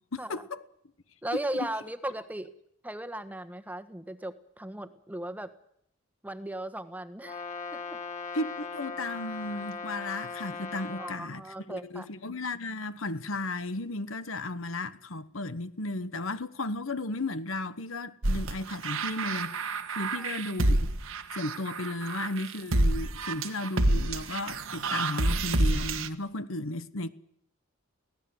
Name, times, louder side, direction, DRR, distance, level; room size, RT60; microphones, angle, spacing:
voice 1, 0.1-0.6 1.5-1.7 8.3-20.9 21.3-27.1, left 2 dB, 70° left, 1.2 m, -35 dB
voice 2, 1.2-2.5 2.8-5.5 6.2-7.4 7.7-8.0 11.0-12.1 20.1-20.3, right 1 dB, 10° right, 1.3 m, -37 dB
Brass instrument, 7.2-11.2, left 4 dB, 35° left, 4.1 m, -39 dB
sound 1, 18.2-26.1, right 2 dB, 70° right, 1.5 m, -28 dB
24.5 x 17.5 x 7.9 m
head